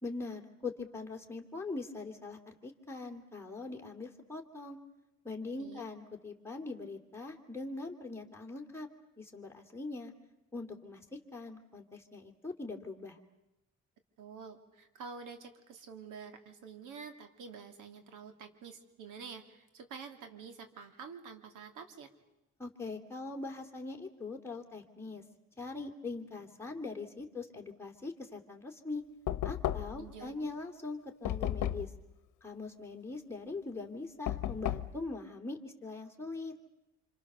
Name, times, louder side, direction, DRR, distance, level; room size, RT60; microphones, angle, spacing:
voice 1, 0.0-4.8 5.2-8.9 9.2-10.1 10.5-11.0 11.3-13.2 22.6-25.2 25.6-29.0 29.4-31.9 32.4-36.5, left 3 dB, 10° left, 0 dB, 3.0 m, -42 dB
voice 2, 14.2-22.1 30.0-30.3, right 5 dB, 85° right, 7 dB, 2.8 m, -48 dB
Knock, 29.3-30.1 31.3-32.0 34.3-35.0, left 12 dB, 75° left, 1.0 m, -34 dB
26.5 x 26.0 x 6.9 m, 0.95 s
cardioid pair, 90°, 30 cm